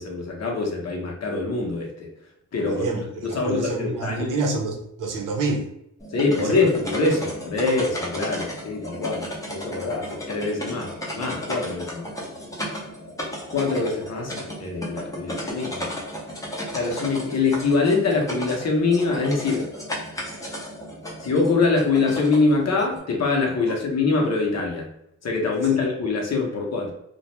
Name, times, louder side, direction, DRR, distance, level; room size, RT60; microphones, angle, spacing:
voice 1, 0.0-2.1 2.5-4.3 6.1-12.1 13.5-16.0 16.7-19.7 21.2-24.9 25.2-26.9, left 3 dB, 50° left, 0 dB, 0.7 m, -24 dB
voice 2, 2.7-5.7 6.3-6.7 25.5-25.6, right 3 dB, 70° right, 1 dB, 0.7 m, -28 dB
sound 1, 6.0-23.0, equal, 10° left, 0.6 m, -34 dB
2.3 x 2.1 x 2.9 m, 0.76 s
cardioid pair, 90°, 33 cm